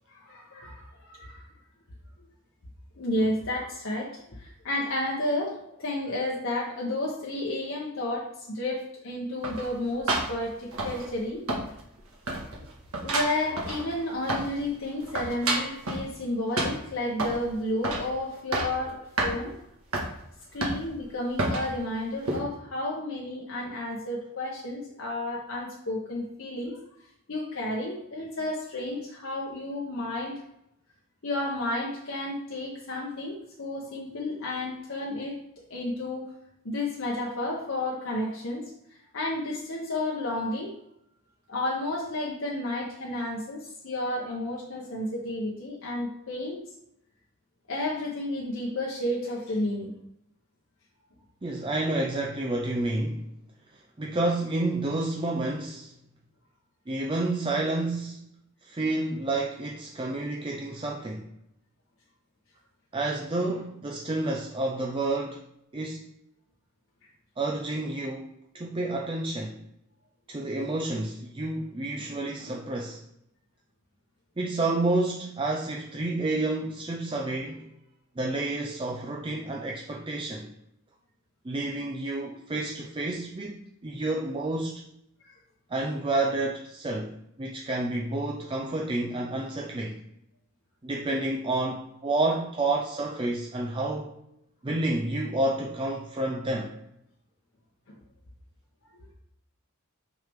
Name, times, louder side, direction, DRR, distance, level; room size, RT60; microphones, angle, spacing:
voice 1, 0.1-1.4 3.0-11.4 13.0-19.5 20.5-26.8 27.3-30.4 31.2-35.3 35.7-36.3 36.6-38.7 39.1-40.7 41.5-46.6 47.7-49.9 85.2-85.3 97.9-98.0, left 1 dB, 60° left, -2 dB, 1.0 m, -32 dB
sound 1, 9.4-11.2 11.5-12.0 12.3-14.6 14.9-16.1 16.6-17.4 17.8-18.1 18.4-18.8 19.2-19.3 19.9-20.1 20.6-21.0 21.4-21.7 22.3-22.4, right 2 dB, 75° right, 1.6 m, -29 dB
voice 2, 51.4-53.3 54.0-55.9 56.9-58.2 58.6-61.3 62.9-65.4 65.7-66.0 67.4-69.6 70.3-73.0 74.4-77.7 78.2-80.5 81.4-84.8 85.7-90.0 90.8-94.2 94.6-96.8, right 2 dB, 25° right, 0 dB, 0.5 m, -30 dB
5.9 x 5.6 x 3.5 m, 0.81 s
head